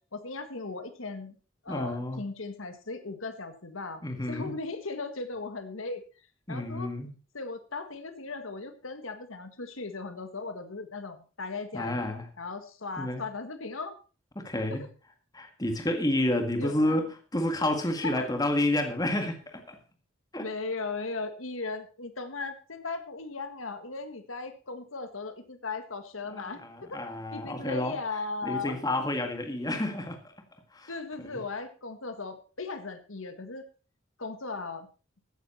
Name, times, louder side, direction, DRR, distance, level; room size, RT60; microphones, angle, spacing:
voice 1, 0.1-1.4 1.6-4.0 4.3-6.0 6.5-6.9 7.3-12.1 12.4-14.0 14.7-14.9 16.5-17.0 17.6-18.3 20.4-26.6 26.9-27.0 27.3-28.8 30.9-33.7 34.2-34.9, left 3 dB, 90° left, 1.7 m, -37 dB
voice 2, 1.7-2.2 4.0-4.6 6.5-7.1 11.7-12.3 13.0-13.2 14.3-14.8 15.3-19.8 20.3-20.5 26.3-28.0 28.4-30.2 30.7-30.9 31.2-31.4, left 1 dB, 20° left, 1.8 m, -30 dB
14.5 x 9.8 x 4.3 m
head